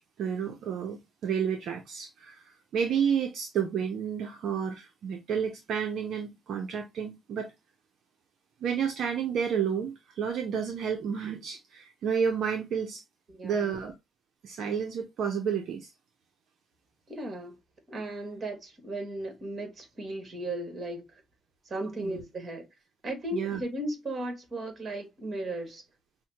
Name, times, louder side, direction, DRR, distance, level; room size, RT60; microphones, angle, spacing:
voice 1, 0.0-7.5 8.6-13.0 13.4-13.9 14.4-15.9 22.0-22.2 23.3-23.6, right 7 dB, 70° right, 0.6 m, -31 dB
voice 2, 13.3-13.8 17.1-17.6 17.9-21.1 21.6-22.7 23.0-25.8, right 1 dB, 40° right, 1.6 m, -36 dB
5.4 x 2.2 x 2.9 m
cardioid pair, 90°, 0 cm